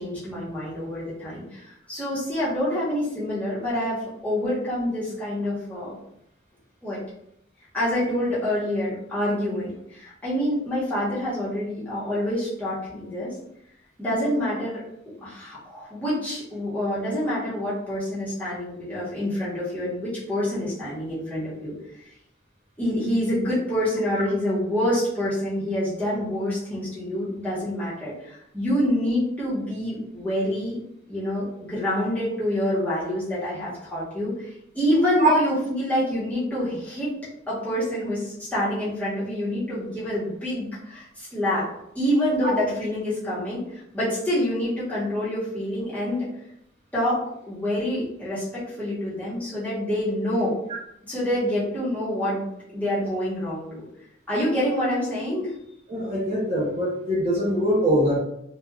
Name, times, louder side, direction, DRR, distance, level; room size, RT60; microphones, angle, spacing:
voice 1, 0.0-4.0 4.2-6.0 6.8-7.0 7.7-13.3 14.0-14.8 15.2-21.7 22.8-30.8 31.1-37.1 37.5-41.7 41.9-46.3 46.9-50.5 51.1-52.5 52.7-53.8 54.3-55.5, left 1 dB, 10° left, -10 dB, 1.0 m, -27 dB
voice 2, 55.9-58.2, right 1 dB, 30° right, -7 dB, 0.6 m, -22 dB
3.3 x 2.2 x 2.3 m, 0.77 s
head